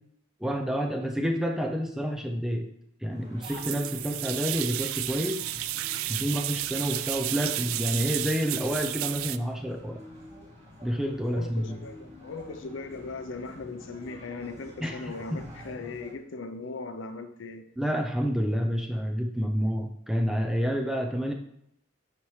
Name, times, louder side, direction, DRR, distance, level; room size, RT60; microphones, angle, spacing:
voice 1, 0.4-2.7 3.0-5.5 6.1-10.0 10.8-11.7 14.8-15.4 17.8-21.3, equal, ahead, 3 dB, 0.4 m, -29 dB
sound 1, 3.1-16.1, left 1 dB, 30° right, 2.3 m, -48 dB
sound 2, 3.4-9.4, right 15 dB, 85° right, 0.3 m, -32 dB
voice 2, 11.3-17.7, left 3 dB, 65° left, 9 dB, 0.6 m, -39 dB
11.0 x 4.4 x 3.2 m, 0.75 s
head